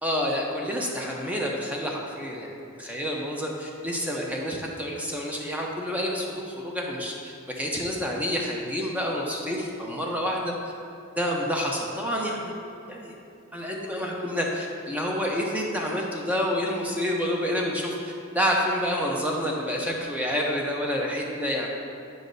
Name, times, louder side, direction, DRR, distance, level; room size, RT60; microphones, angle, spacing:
voice 1, 0.0-10.5 11.2-12.5 12.9-13.1 13.5-21.7, equal, 5° right, -2 dB, 0.7 m, -28 dB
9.2 x 5.2 x 2.7 m, 2.5 s
head